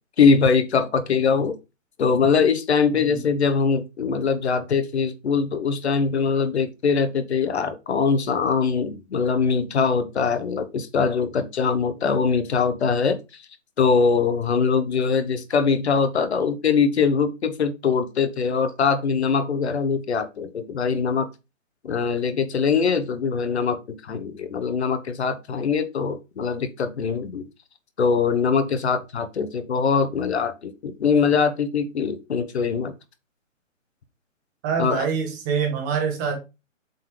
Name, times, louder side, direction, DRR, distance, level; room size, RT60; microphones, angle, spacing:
voice 1, 0.2-1.5 2.0-13.4 13.8-21.3 21.8-27.5 28.0-32.9 34.8-35.0, left 5 dB, 55° left, 10 dB, 1.2 m, -22 dB
voice 2, 34.6-36.4, right 6 dB, 15° right, 3 dB, 1.0 m, -25 dB
7.8 x 4.1 x 3.3 m, 0.26 s
hypercardioid pair, 160°, 39 cm